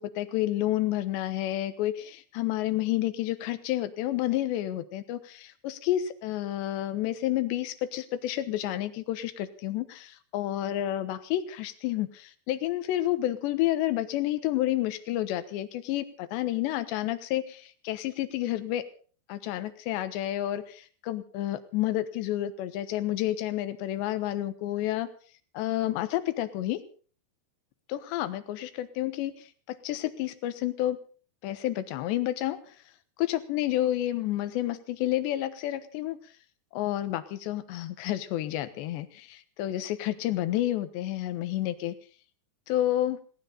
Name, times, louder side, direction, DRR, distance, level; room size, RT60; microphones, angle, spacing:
voice 1, 0.0-18.8 19.3-25.1 25.5-26.8 27.9-31.0 31.4-32.6 33.2-36.2 36.7-41.9 42.7-43.2, left 14 dB, 80° left, 12 dB, 3.4 m, -30 dB
19.5 x 18.0 x 3.9 m, 0.40 s
omnidirectional pair, 5.1 m